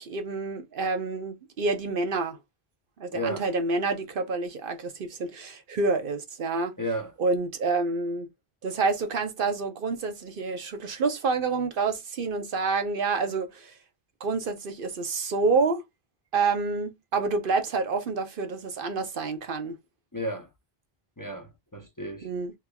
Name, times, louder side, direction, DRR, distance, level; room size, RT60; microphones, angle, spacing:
voice 1, 0.0-2.4 3.0-6.7 7.2-8.3 8.6-13.8 14.2-15.8 16.3-19.8 22.2-22.5, right 4 dB, 60° right, 0.9 m, -28 dB
voice 2, 3.1-3.5 6.8-7.1 20.1-20.5 21.2-22.3, equal, 20° left, 0.7 m, -33 dB
3.4 x 3.3 x 2.3 m
omnidirectional pair, 1.0 m